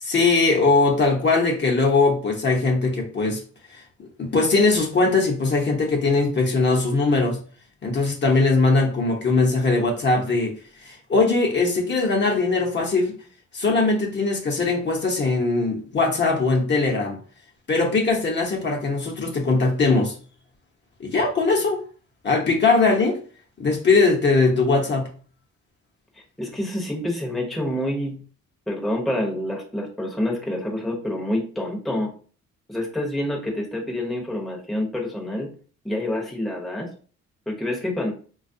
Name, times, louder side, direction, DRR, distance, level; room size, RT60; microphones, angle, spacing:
voice 1, 0.0-3.4 4.2-7.4 7.8-10.5 10.8-13.1 13.5-17.2 17.7-20.1 21.0-21.8 22.2-23.2 23.6-25.1, left 3 dB, 35° left, 0 dB, 0.8 m, -20 dB
voice 2, 26.4-28.2 28.7-32.1 32.7-35.5 35.8-36.9 37.5-38.1, left 1 dB, ahead, -2 dB, 0.8 m, -27 dB
3.2 x 2.3 x 2.6 m, 0.41 s
cardioid pair, 90°, 30 cm